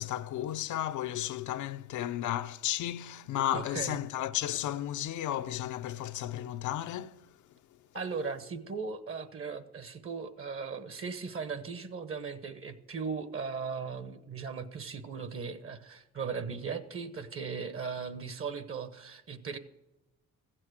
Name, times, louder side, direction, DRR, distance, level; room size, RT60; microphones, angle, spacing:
voice 1, 0.0-7.2, left 12 dB, 75° left, 0.6 m, -33 dB
voice 2, 3.5-4.0 7.9-19.6, right 5 dB, 45° right, 1.1 m, -38 dB
14.5 x 7.6 x 6.4 m
cardioid pair, 90°, 30 cm